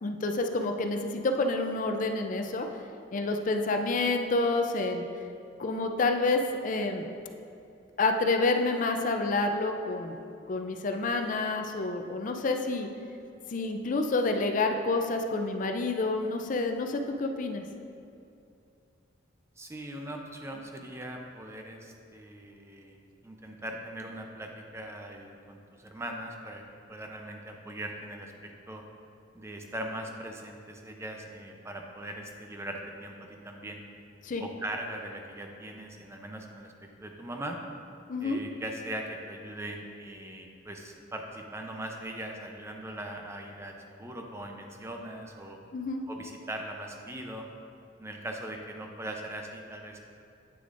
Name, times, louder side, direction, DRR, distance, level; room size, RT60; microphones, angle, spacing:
voice 1, 0.0-2.7 3.1-5.1 5.6-7.1 8.0-10.2 10.5-12.9 13.5-17.6 34.2-34.4 38.1-38.4 45.7-46.0, left 3 dB, 45° left, 5 dB, 0.4 m, -28 dB
voice 2, 19.6-23.0 23.2-26.6 26.9-28.3 28.7-28.8 29.3-33.8 34.4-37.6 38.2-45.6 46.1-47.5 48.0-50.0, right 1 dB, 15° right, 2 dB, 0.6 m, -40 dB
9.1 x 6.8 x 2.5 m, 2.6 s
head